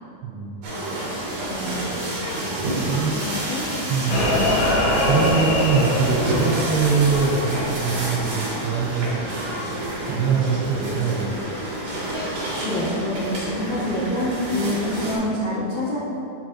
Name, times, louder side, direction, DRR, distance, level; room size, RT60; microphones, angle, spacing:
voice 1, 0.2-0.7 2.9-3.1 3.9-4.3 5.1-9.2 10.1-11.4, right 5 dB, 85° right, 1 dB, 2.6 m, -23 dB
sound 1, 0.6-15.2, right 1 dB, 55° right, 2.1 m, -29 dB
voice 2, 1.5-1.9 3.1-3.7 4.1-4.4 12.6-16.0, left 1 dB, 70° left, -10 dB, 1.8 m, -26 dB
sound 2, 4.1-8.2 8.5-8.6, left 1 dB, 85° left, 3.5 m, -23 dB
7.4 x 7.2 x 3.0 m, 2.8 s
omnidirectional pair, 4.7 m